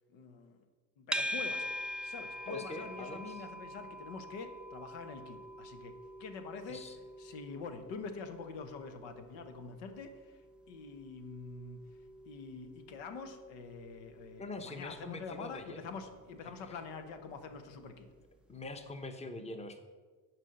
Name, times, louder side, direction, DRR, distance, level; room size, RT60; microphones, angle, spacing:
voice 1, 0.1-0.6 1.0-1.7 2.0-6.8 7.2-10.4 10.7-11.8 12.2-18.1, left 4 dB, 80° left, 8 dB, 1.2 m, -45 dB
sound 1, 1.1-18.3, equal, ahead, 0.4 m, -45 dB
voice 2, 2.5-3.4 6.7-7.0 14.4-16.0 16.7-16.8 18.5-19.8, left 2 dB, 15° left, 8 dB, 0.9 m, -44 dB
10.5 x 4.6 x 6.5 m, 1.4 s
supercardioid pair, 95°, 44 cm